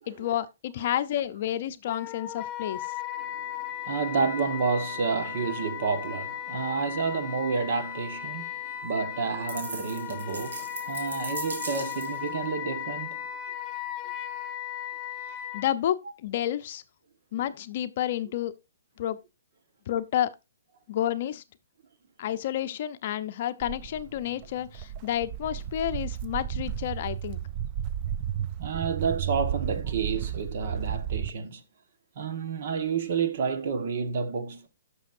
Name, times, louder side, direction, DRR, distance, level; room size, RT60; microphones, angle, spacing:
voice 1, 0.1-2.8 15.5-16.8 17.3-18.5 19.0-19.2 19.9-20.3 20.9-21.4 22.2-27.4, left 11 dB, 45° left, 0.6 m, -30 dB
Wind instrument woodwind instrument, 1.9-15.7, left 11 dB, 15° left, 1.4 m, -36 dB
voice 2, 3.2-13.3 28.6-31.6 32.1-34.7, right 5 dB, 50° right, 1.4 m, -30 dB
sound 1, 9.5-12.3, right 3 dB, 85° right, 2.7 m, -38 dB
Walk footsteps, 23.6-31.3, right 10 dB, 30° right, 0.4 m, -33 dB
13.5 x 6.2 x 2.6 m
hypercardioid pair, 150°, 0 cm